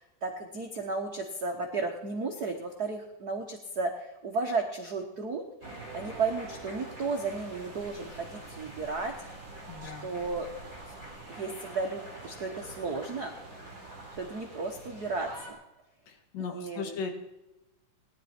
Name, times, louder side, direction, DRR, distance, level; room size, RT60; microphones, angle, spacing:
voice 1, 0.0-5.4 5.9-9.1 9.8-10.5 10.9-11.0 11.3-13.3 14.2-15.6 16.4-17.0, right 3 dB, 70° right, 3 dB, 0.9 m, -34 dB
sound 1, 5.6-15.5, right 2 dB, 25° right, 4.1 m, -45 dB
voice 2, 9.7-10.1 16.3-17.1, left 5 dB, 90° left, 4 dB, 3.6 m, -36 dB
18.5 x 11.5 x 4.4 m, 0.98 s
omnidirectional pair, 3.7 m